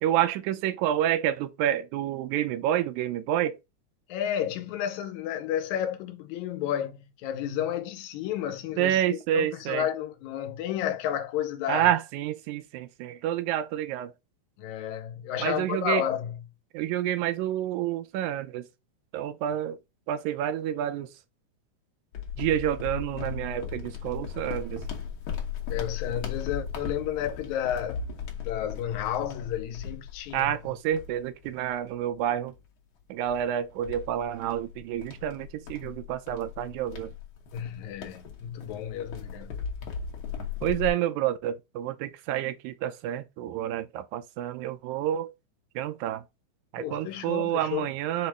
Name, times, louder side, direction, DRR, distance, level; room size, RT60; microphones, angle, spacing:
voice 1, 0.0-3.6 8.8-9.9 11.7-14.1 15.4-16.0 16.7-18.7 19.1-19.8 20.1-21.1 22.4-24.8 30.3-32.5 33.1-37.1 40.6-45.3 45.8-46.2 46.7-48.3, right 11 dB, 90° right, 2.0 m, -29 dB
voice 2, 4.1-11.9 14.6-16.4 25.7-28.1 28.4-30.6 37.5-39.6 46.8-47.9, left 10 dB, 85° left, 2.0 m, -32 dB
sound 1, 22.1-32.0 32.5-32.6 33.2-40.9, left 6 dB, 65° left, 1.3 m, -37 dB
5.3 x 2.0 x 4.6 m
omnidirectional pair, 3.4 m